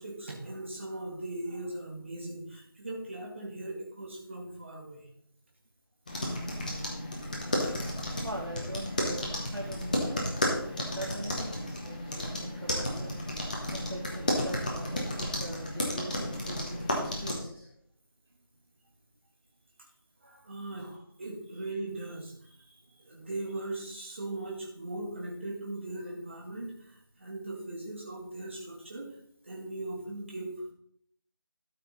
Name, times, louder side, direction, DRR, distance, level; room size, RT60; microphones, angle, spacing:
voice 1, 0.0-5.1 20.2-29.2 29.4-30.7, right 2 dB, 30° right, -2 dB, 2.0 m, -39 dB
sound 1, 6.1-17.3, left 1 dB, 20° left, 1.3 m, -33 dB
voice 2, 8.2-10.2 10.8-13.2 13.7-17.7, right 1 dB, 90° right, -4 dB, 2.4 m, -41 dB
12.5 x 5.7 x 4.1 m, 0.67 s
figure-of-eight pair, 165°, 12 cm